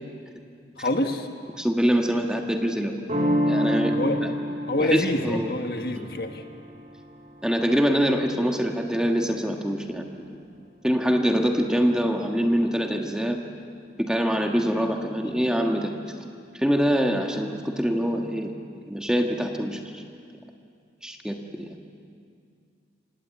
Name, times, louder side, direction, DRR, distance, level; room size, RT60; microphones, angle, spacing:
voice 1, 0.8-1.3 3.9-4.2 4.7-6.4, left 2 dB, 60° left, 5 dB, 1.6 m, -26 dB
voice 2, 1.6-3.0 3.5-4.3 4.8-5.5 6.0-6.1 7.4-10.1 10.8-13.4 14.0-15.9 16.5-18.5 18.9-20.0 21.0-21.7, equal, 5° right, 2 dB, 1.4 m, -24 dB
sound 1, 3.1-8.6, equal, 40° right, 3.0 m, -29 dB
27.5 x 18.0 x 8.4 m, 2.3 s
head